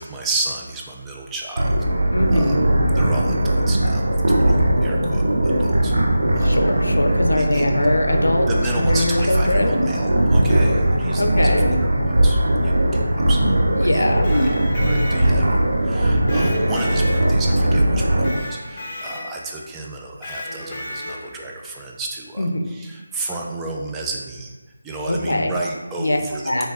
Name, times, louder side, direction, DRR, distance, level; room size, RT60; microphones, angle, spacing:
voice 1, 0.0-1.8 2.3-2.6 2.9-5.9 6.3-6.6 7.4-7.7 8.4-11.6 12.0-13.0 13.3-13.4 13.8-24.6 24.8-26.7, right 2 dB, 10° right, -2 dB, 0.3 m, -32 dB
sound 1, 1.6-18.3, right 1 dB, 70° right, 0.5 m, -19 dB
voice 2, 2.1-2.6 6.3-8.4 8.8-9.9 11.1-11.7 13.8-14.6 22.4-22.6 25.1-25.5 26.0-26.2 26.4-26.7, left 1 dB, 85° left, 4 dB, 0.5 m, -22 dB
Electric guitar, 14.1-15.6 16.3-17.7 18.2-19.5 20.2-21.5, left 1 dB, 35° left, 0.8 m, -34 dB
3.2 x 2.6 x 3.4 m, 1.3 s
figure-of-eight pair, 165°, 0 cm